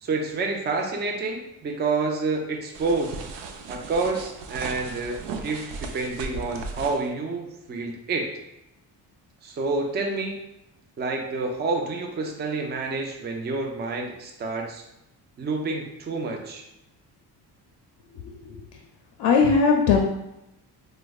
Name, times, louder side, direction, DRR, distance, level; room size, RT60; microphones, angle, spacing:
voice 1, 0.0-3.1 3.7-8.3 9.4-10.4 11.0-14.8 15.4-16.6, right 3 dB, 25° right, 2 dB, 0.4 m, -28 dB
sound 1, 2.7-7.1, right 4 dB, 85° right, 0.5 m, -37 dB
voice 2, 18.2-18.6 19.2-20.0, left 5 dB, 80° left, 2 dB, 0.5 m, -19 dB
4.6 x 2.1 x 2.3 m, 0.86 s
cardioid pair, 130°, 41 cm